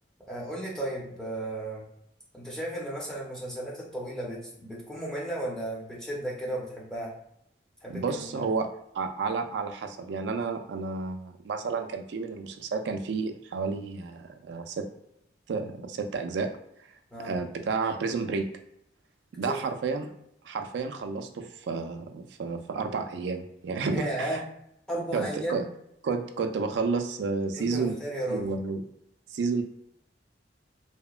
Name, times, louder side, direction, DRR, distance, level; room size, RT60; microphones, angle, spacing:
voice 1, 0.3-1.9 2.3-7.1 7.8-8.4 17.1-17.4 19.5-19.6 23.8-24.4 24.9-25.7 27.5-28.5, right 1 dB, 5° left, -5 dB, 0.6 m, -34 dB
voice 2, 7.9-14.9 15.5-16.5 17.2-18.5 19.3-20.1 20.4-24.3 25.1-25.6 26.0-28.0 28.3-28.8 29.3-29.6, right 4 dB, 70° right, 6 dB, 0.3 m, -31 dB
2.8 x 2.1 x 2.3 m, 0.76 s
head